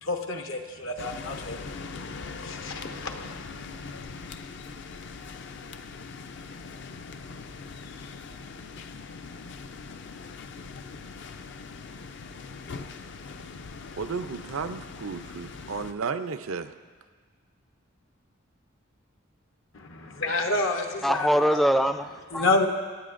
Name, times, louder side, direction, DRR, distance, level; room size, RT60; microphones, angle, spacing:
voice 1, 0.0-4.2 19.7-21.3 22.3-22.7, left 2 dB, 75° left, 4 dB, 0.9 m, -30 dB
sound 1, 1.0-15.9, left 4 dB, 60° left, 0.5 m, -41 dB
voice 2, 14.0-16.7, right 5 dB, 85° right, 10 dB, 0.6 m, -33 dB
voice 3, 21.0-22.7, equal, ahead, 8 dB, 0.3 m, -24 dB
23.5 x 9.3 x 2.5 m, 1.5 s
head